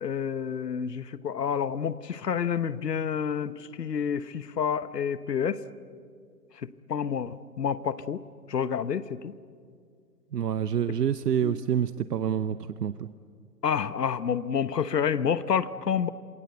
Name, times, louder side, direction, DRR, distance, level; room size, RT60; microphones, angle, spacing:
voice 1, 0.0-5.6 6.6-8.2 8.5-9.3 10.9-11.0 11.4-11.6 13.6-16.1, left 7 dB, 80° left, 15 dB, 1.2 m, -29 dB
voice 2, 10.3-13.1, right 8 dB, 80° right, 13 dB, 0.9 m, -27 dB
27.5 x 21.0 x 8.2 m, 2.2 s
hypercardioid pair, 155°, 47 cm